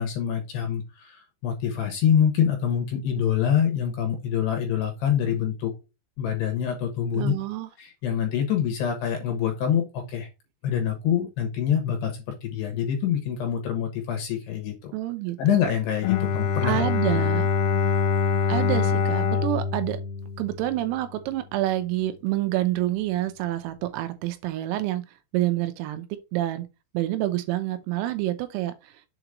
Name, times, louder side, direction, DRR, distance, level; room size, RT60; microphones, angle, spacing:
voice 1, 0.0-5.7 6.2-7.3 7.8-10.3 10.6-14.9 15.4-17.2, left 8 dB, 70° left, 2.8 m, -25 dB
voice 2, 7.1-7.7 14.9-15.6 16.6-17.5 18.5-20.0 20.4-25.0 25.3-26.1 26.3-26.7 27.0-28.9, right 15 dB, 90° right, 3.6 m, -27 dB
Bowed string instrument, 16.0-21.0, left 6 dB, 85° left, 3.1 m, -24 dB
7.6 x 3.0 x 4.8 m
omnidirectional pair, 5.9 m